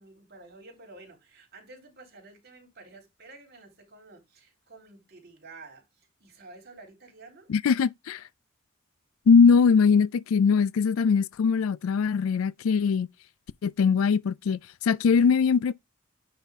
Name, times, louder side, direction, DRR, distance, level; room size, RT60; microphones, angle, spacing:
voice 1, 0.0-7.5, right 3 dB, 50° right, 3.6 m, -50 dB
voice 2, 7.5-8.2 9.3-13.1 13.6-15.7, left 5 dB, 85° left, 0.4 m, -21 dB
9.4 x 4.1 x 3.5 m
head